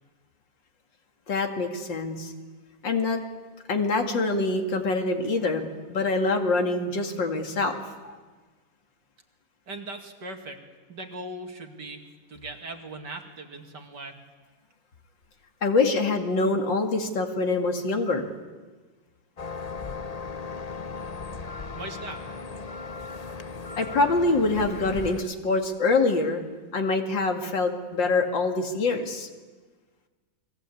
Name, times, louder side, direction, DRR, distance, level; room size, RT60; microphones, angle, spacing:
voice 1, 1.3-2.3 2.8-3.2 3.7-7.8 8.0-8.2 15.6-18.2 23.8-26.4 26.7-29.3, left 3 dB, 75° left, 4 dB, 3.0 m, -25 dB
voice 2, 9.7-10.6 10.9-14.2 21.8-22.2, right 2 dB, 65° right, 4 dB, 3.1 m, -39 dB
sound 1, 19.4-25.2, left 4 dB, 35° left, 0.6 m, -37 dB
29.5 x 22.0 x 8.5 m, 1.4 s
omnidirectional pair, 2.0 m